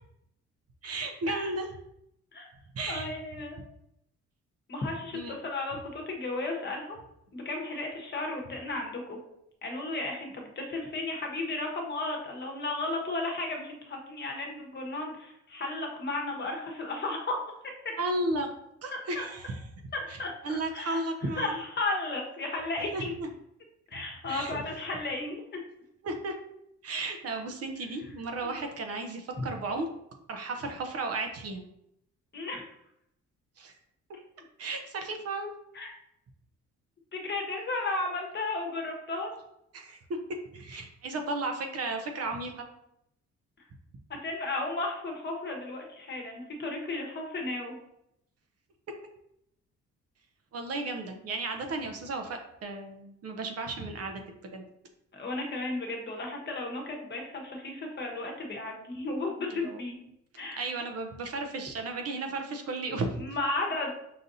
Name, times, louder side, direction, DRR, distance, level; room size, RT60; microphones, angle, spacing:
voice 1, 0.8-1.7 2.7-3.1 5.1-5.4 18.0-18.5 18.8-19.6 20.1-20.2 20.4-21.6 22.9-23.3 24.3-24.6 26.0-26.3 26.8-29.9 30.3-31.6 33.6-33.7 34.6-35.5 39.7-40.0 40.5-42.6 50.5-54.2 54.5-54.6 59.5-59.8 60.6-63.4, right 2 dB, 55° right, 5 dB, 0.7 m, -34 dB
voice 2, 2.9-3.6 4.7-7.0 7.3-9.2 9.6-17.4 18.9-19.2 19.9-21.0 21.4-23.1 23.9-25.4 28.4-28.5 29.4-29.5 32.3-32.6 35.7-35.9 37.1-39.3 44.2-47.7 55.1-59.9 60.4-60.7 63.2-63.9, left 2 dB, 35° left, 1 dB, 1.0 m, -34 dB
5.7 x 2.5 x 2.6 m, 0.78 s
cardioid pair, 90°, 30 cm